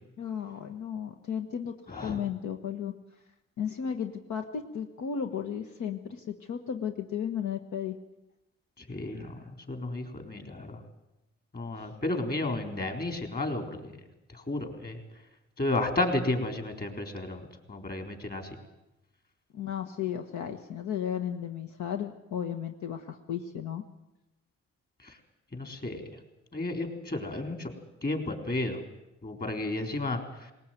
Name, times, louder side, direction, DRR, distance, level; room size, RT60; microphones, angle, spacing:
voice 1, 0.2-1.7 2.0-2.9 3.6-8.0 11.8-11.9 19.5-23.8, left 8 dB, 70° left, 6 dB, 1.4 m, -34 dB
voice 2, 1.9-2.2 8.9-9.3 9.7-10.8 11.5-13.9 14.3-15.0 15.6-17.4 17.7-18.5 25.5-26.0 26.5-27.7 28.0-28.8 29.2-30.2, left 2 dB, 30° left, 5 dB, 4.0 m, -32 dB
19.5 x 19.0 x 9.1 m, 0.93 s
cardioid pair, 90°, 30 cm